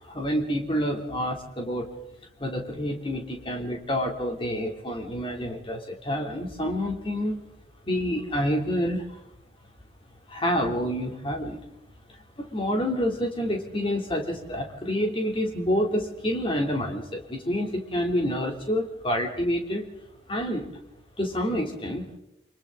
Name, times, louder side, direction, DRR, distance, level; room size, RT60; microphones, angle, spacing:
voice 1, 0.0-1.9 2.4-7.4 7.8-9.2 10.3-11.6 12.4-19.9 20.3-20.7 21.2-22.2, equal, 30° left, 1 dB, 3.2 m, -28 dB
30.0 x 24.5 x 4.0 m, 0.87 s
head